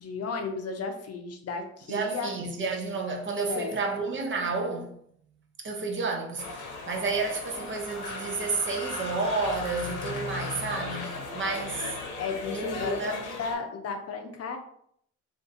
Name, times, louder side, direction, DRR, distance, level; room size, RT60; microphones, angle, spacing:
voice 1, 0.0-2.3 3.5-3.7 11.8-11.9 12.2-14.6, left 5 dB, 55° left, 0.6 m, -34 dB
voice 2, 1.9-5.0 5.6-11.9 12.5-13.3, right 4 dB, 40° right, 0.7 m, -31 dB
sound 1, 6.4-13.5, left 4 dB, 85° left, 0.8 m, -37 dB
Wind instrument woodwind instrument, 7.9-11.8, right 4 dB, 20° right, 1.1 m, -45 dB
3.7 x 2.5 x 2.7 m
cardioid pair, 90°, 30 cm